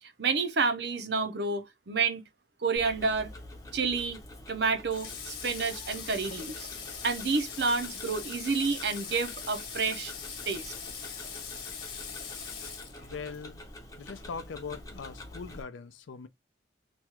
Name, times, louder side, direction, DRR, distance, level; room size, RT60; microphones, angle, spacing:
voice 1, 0.0-2.2 2.6-3.3 3.7-4.2 4.5-6.7 7.0-10.1 10.5-10.7, right 4 dB, 60° right, 0.6 m, -29 dB
Tick-tock, 2.8-15.6, left 1 dB, 20° left, 0.6 m, -47 dB
Water / Water tap faucet, 4.9-13.4, left 6 dB, 50° left, 1.1 m, -41 dB
voice 2, 13.0-13.6 14.0-16.3, left 5 dB, 75° left, 0.4 m, -41 dB
3.1 x 2.3 x 2.8 m
head